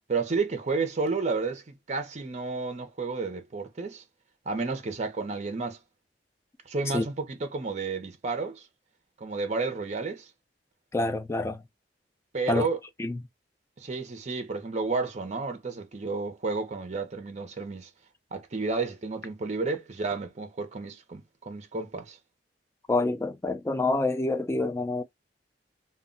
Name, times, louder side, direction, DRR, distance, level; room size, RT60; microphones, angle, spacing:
voice 1, 0.1-4.0 4.5-5.8 6.7-7.1 7.4-8.7 9.2-10.3 12.3-12.8 13.8-17.9 18.3-22.2, right 4 dB, 40° right, 0.5 m, -31 dB
voice 2, 10.9-11.6 12.5-12.7 13.0-13.2 22.9-25.0, left 2 dB, 15° left, 0.3 m, -27 dB
2.1 x 2.1 x 3.6 m
head